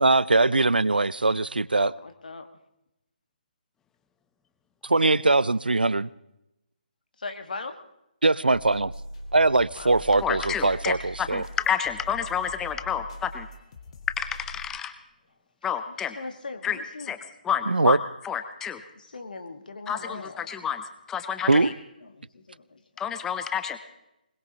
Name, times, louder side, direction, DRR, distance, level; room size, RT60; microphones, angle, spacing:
voice 1, 0.0-1.9 4.8-6.1 8.2-8.9 9.3-11.4 17.7-18.0 21.5-21.7, right 2 dB, 85° right, 21 dB, 0.5 m, -21 dB
voice 2, 1.8-2.5 7.2-7.8 9.8-10.0 16.2-17.1 19.0-20.5 22.2-22.8, left 3 dB, 65° left, 7 dB, 1.7 m, -39 dB
sound 1, 8.5-14.7, equal, 40° left, 1.9 m, -42 dB
voice 3, 10.2-13.5 14.2-14.9 15.6-16.2 16.6-17.2 17.4-18.0 18.2-18.8 19.9-21.7 23.0-23.8, left 8 dB, 10° left, 9 dB, 0.7 m, -30 dB
23.0 x 21.0 x 2.9 m, 0.88 s
figure-of-eight pair, 145°, 5 cm